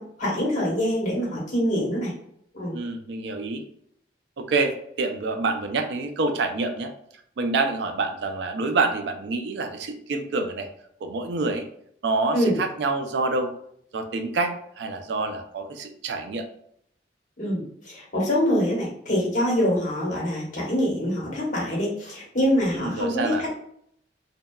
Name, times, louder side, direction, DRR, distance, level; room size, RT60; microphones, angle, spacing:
voice 1, 0.0-2.1 2.5-2.8 12.3-12.6 17.4-23.5, equal, 40° left, -4 dB, 1.0 m, -25 dB
voice 2, 2.7-3.6 4.4-6.9 7.4-10.7 11.0-11.6 12.0-13.5 13.9-16.4 22.7-23.4, right 3 dB, 65° right, 6 dB, 0.3 m, -27 dB
2.8 x 2.2 x 2.2 m, 0.68 s
head